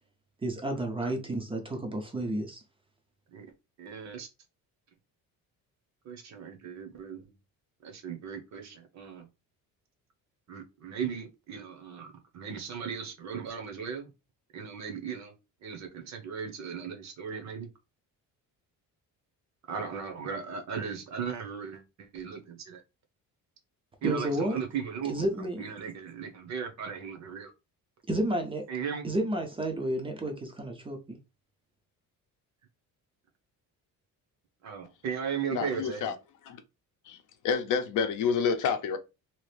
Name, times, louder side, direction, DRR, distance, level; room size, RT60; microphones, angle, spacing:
voice 1, 0.4-2.6 24.0-24.6 25.0-25.7 28.1-28.6 29.0-31.2, right 1 dB, 15° right, 0.4 m, -31 dB
voice 2, 3.8-4.3 6.0-7.2 7.8-9.3 10.5-12.1 12.3-14.1 14.5-15.3 15.6-17.7 19.7-22.8 24.0-25.2 25.6-27.5 28.7-29.0 34.6-36.1, right 6 dB, 50° right, 0.8 m, -37 dB
voice 3, 35.5-36.1 36.5-36.6 37.1-37.2 37.4-39.0, left 6 dB, 60° left, 0.6 m, -28 dB
2.9 x 2.4 x 3.2 m
cardioid pair, 160°, 35 cm